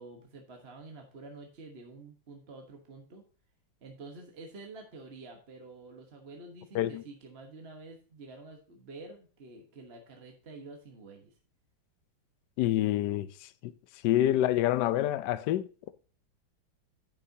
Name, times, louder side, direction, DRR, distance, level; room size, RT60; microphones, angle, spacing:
voice 1, 0.0-3.2 3.8-11.3, right 3 dB, 35° right, 1.3 m, -48 dB
voice 2, 12.6-13.3 13.6-13.7 14.0-15.9, left 13 dB, 70° left, 1.1 m, -27 dB
10.5 x 6.7 x 2.7 m
omnidirectional pair, 2.1 m